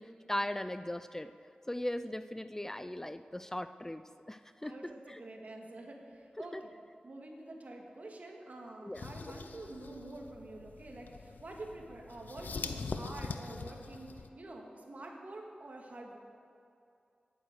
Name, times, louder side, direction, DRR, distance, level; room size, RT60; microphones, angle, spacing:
voice 1, 0.0-1.3 1.7-4.0 4.3-4.8 5.1-5.2 6.5-6.6 8.8-9.1, left 1 dB, 15° left, 11 dB, 0.4 m, -38 dB
voice 2, 4.6-6.7 7.0-16.2, right 2 dB, 60° right, 1 dB, 1.8 m, -47 dB
sound 1, 8.9-14.3, left 4 dB, 85° left, 0.6 m, -43 dB
11.0 x 9.0 x 6.5 m, 2.6 s
wide cardioid pair, 60°, 3 cm